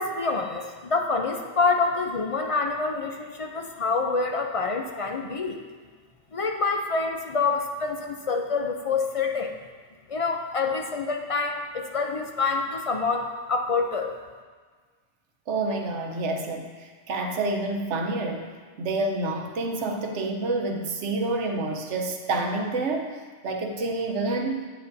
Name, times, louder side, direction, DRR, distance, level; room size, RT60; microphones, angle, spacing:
voice 1, 0.0-5.6 6.3-9.5 10.1-14.1, left 4 dB, 50° left, 3 dB, 0.4 m, -27 dB
voice 2, 15.5-24.7, right 2 dB, 75° right, 3 dB, 1.1 m, -28 dB
9.5 x 8.1 x 2.6 m, 1.5 s
omnidirectional pair, 1.2 m